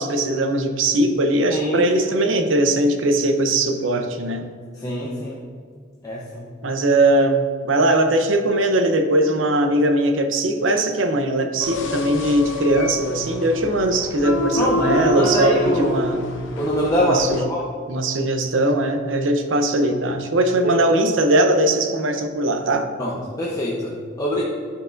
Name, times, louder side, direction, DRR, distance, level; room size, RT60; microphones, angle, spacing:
voice 1, 0.0-4.5 6.6-16.3 17.1-17.5 17.9-22.9, right 1 dB, 75° right, 6 dB, 0.7 m, -20 dB
voice 2, 1.5-1.9 4.8-5.4 6.0-6.5 14.6-16.0 16.6-17.7 20.6-20.8 23.0-24.4, equal, 20° left, -5 dB, 0.7 m, -24 dB
sound 1, 11.6-17.4, left 1 dB, 75° left, 0.7 m, -27 dB
11.5 x 4.7 x 2.5 m, 2.1 s
head